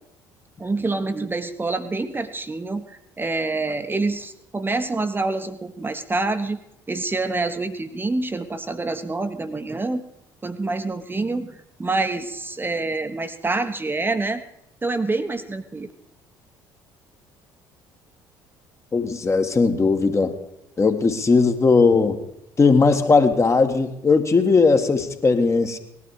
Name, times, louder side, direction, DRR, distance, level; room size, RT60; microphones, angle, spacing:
voice 1, 0.6-6.6 6.9-10.0 10.4-14.4 14.8-15.9, right 3 dB, 20° right, 8 dB, 1.1 m, -26 dB
voice 2, 18.9-20.4 20.8-22.2 22.6-25.8, left 4 dB, 25° left, 6 dB, 1.6 m, -18 dB
19.0 x 12.0 x 4.9 m, 0.79 s
figure-of-eight pair, 50°, 11 cm